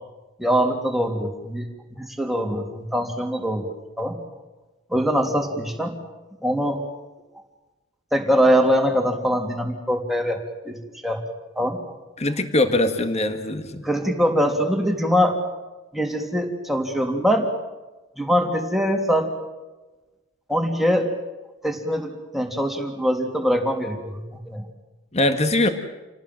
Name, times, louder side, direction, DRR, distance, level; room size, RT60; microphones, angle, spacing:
voice 1, 0.4-4.2 4.9-5.9 6.4-6.8 8.1-11.2 11.5-11.8 13.8-15.4 15.9-17.5 18.2-19.3 20.5-21.1 21.6-24.7, equal, ahead, 3 dB, 3.2 m, -23 dB
voice 2, 12.2-13.8 25.1-25.7, left 1 dB, 35° left, 8 dB, 1.8 m, -21 dB
28.5 x 18.5 x 7.7 m, 1.1 s
head